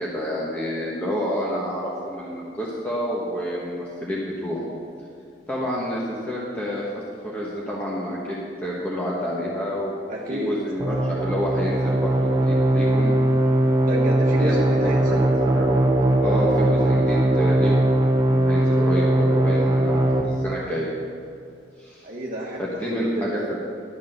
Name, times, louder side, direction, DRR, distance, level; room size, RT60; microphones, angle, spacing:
voice 1, 0.0-4.6 5.5-13.1 14.4-14.6 14.8-15.8 16.2-17.8 18.3-20.9 21.8-22.1 22.6-23.6, equal, 10° left, -6 dB, 1.3 m, -29 dB
voice 2, 10.1-10.5 13.9-15.2 22.0-23.3, equal, 50° right, -4 dB, 1.3 m, -29 dB
sound 1, 10.8-20.2, right 1 dB, 25° right, 1.0 m, -20 dB
12.0 x 6.7 x 6.5 m, 2.6 s
head